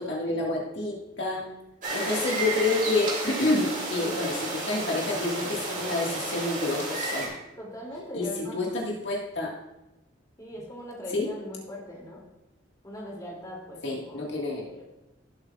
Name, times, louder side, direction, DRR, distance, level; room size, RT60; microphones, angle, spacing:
voice 1, 0.0-1.4 1.9-7.3 8.1-8.3 8.5-9.5 11.1-11.3 13.8-14.6, left 2 dB, 70° left, -2 dB, 1.9 m, -28 dB
sound 1, 1.8-7.3, right 2 dB, 40° right, 2.5 m, -32 dB
voice 2, 3.9-4.2 7.6-8.7 10.4-12.2 12.8-14.8, left 1 dB, 20° left, -3 dB, 2.9 m, -41 dB
17.5 x 7.9 x 2.5 m, 0.96 s
head